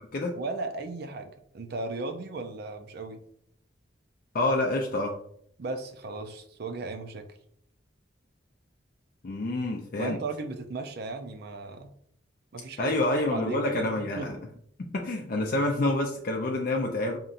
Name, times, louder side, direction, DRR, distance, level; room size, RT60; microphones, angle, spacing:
voice 1, 0.3-3.2 5.6-7.3 10.0-11.9 12.5-13.0 13.3-14.3, right 3 dB, 60° right, 7 dB, 0.5 m, -36 dB
voice 2, 4.3-5.1 9.2-10.2 12.8-14.4 14.8-17.2, left 2 dB, 50° left, 0 dB, 0.5 m, -27 dB
5.2 x 2.8 x 2.5 m, 0.68 s
head